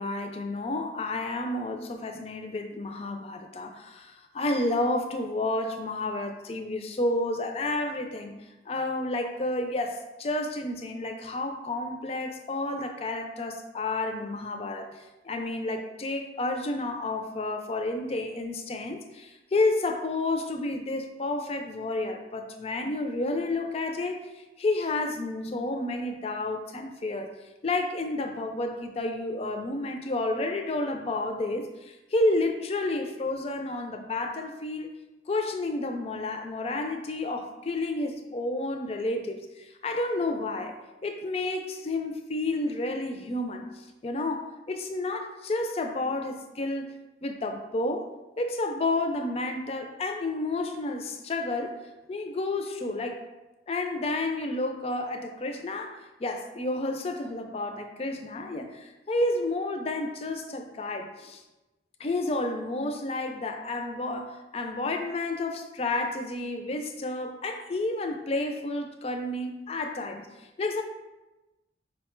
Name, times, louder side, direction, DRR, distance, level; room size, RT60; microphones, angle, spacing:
voice 1, 0.0-8.3 8.7-24.2 24.6-27.3 27.6-34.9 35.3-39.5 39.8-40.7 41.0-43.7 44.0-46.9 47.2-48.1 48.4-51.7 52.1-53.2 53.7-61.4 62.0-70.2 70.6-70.8, left 2 dB, 35° left, 5 dB, 0.4 m, -30 dB
5.2 x 2.1 x 4.4 m, 1.1 s
head